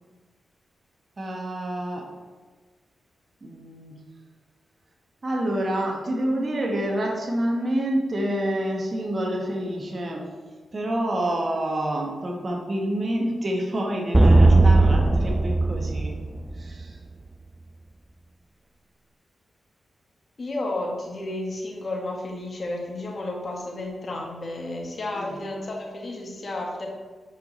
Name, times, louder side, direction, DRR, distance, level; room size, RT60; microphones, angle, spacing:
voice 1, 1.2-2.1 3.4-4.0 5.2-10.4 10.7-16.2 16.5-17.0 25.1-25.3, right 1 dB, 45° right, 0 dB, 1.4 m, -28 dB
sound 1, 14.1-16.8, right 2 dB, 20° right, 0.4 m, -17 dB
voice 2, 20.4-26.9, left 2 dB, 50° left, -1 dB, 2.0 m, -32 dB
8.0 x 4.9 x 4.3 m, 1.4 s
cardioid pair, 50°, 0 cm